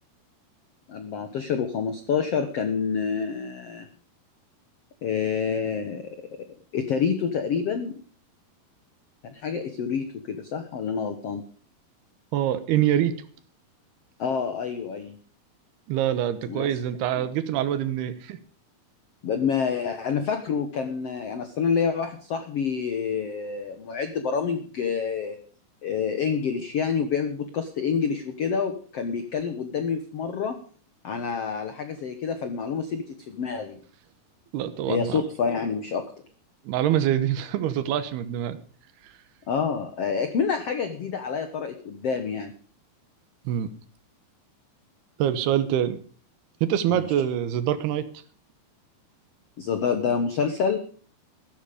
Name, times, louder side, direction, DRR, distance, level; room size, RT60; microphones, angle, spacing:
voice 1, 0.9-3.9 5.0-6.2 6.7-8.0 9.2-11.4 14.2-15.2 16.5-16.7 19.2-25.4 25.8-30.6 31.0-33.8 34.9-36.1 39.5-42.5 46.9-47.0 49.6-50.8, left 6 dB, 80° left, 8 dB, 1.3 m, -27 dB
voice 2, 12.3-13.1 15.9-18.4 34.5-35.2 36.7-38.6 43.5-43.7 45.2-46.0 46.6-48.1, right 11 dB, 80° right, 13 dB, 3.1 m, -25 dB
14.5 x 12.5 x 5.0 m, 0.42 s
omnidirectional pair, 4.7 m